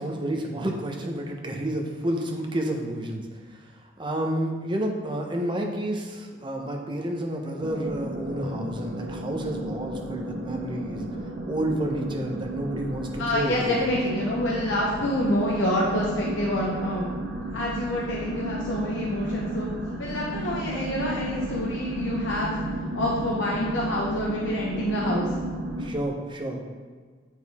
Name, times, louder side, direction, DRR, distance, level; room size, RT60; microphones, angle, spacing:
voice 1, 0.0-11.0 11.5-13.8 25.8-26.6, right 1 dB, 25° right, 1 dB, 0.8 m, -30 dB
sound 1, 7.6-25.9, right 1 dB, 75° right, 0.9 m, -33 dB
voice 2, 13.2-17.1 17.5-19.7 20.0-22.5 22.9-25.3, left 1 dB, 85° left, -4 dB, 1.0 m, -27 dB
8.8 x 4.6 x 3.5 m, 1.5 s
head